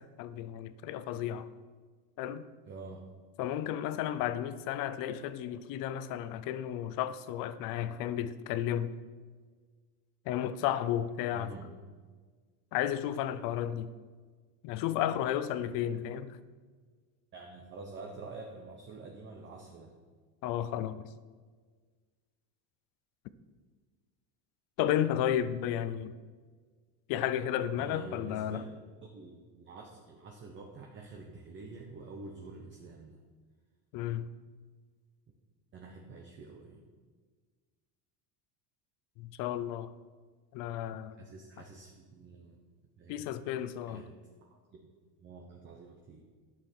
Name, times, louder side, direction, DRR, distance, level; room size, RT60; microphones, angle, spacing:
voice 1, 0.0-1.5 2.2-2.5 3.4-8.9 10.3-11.5 12.7-13.9 14.6-16.4 20.4-21.1 24.8-26.2 27.1-28.6 33.9-34.3 39.2-39.9 40.5-41.2 43.1-44.0, left 11 dB, 45° left, 0.5 m, -33 dB
voice 2, 2.7-3.1 11.3-11.7 17.3-19.9 27.8-28.6 29.0-33.2 35.7-36.8 41.2-42.6 43.0-43.3 43.8-44.1 44.4-44.9 45.2-46.2, right 3 dB, 25° right, 0.8 m, -47 dB
11.5 x 6.8 x 4.4 m
cardioid pair, 150°, 49 cm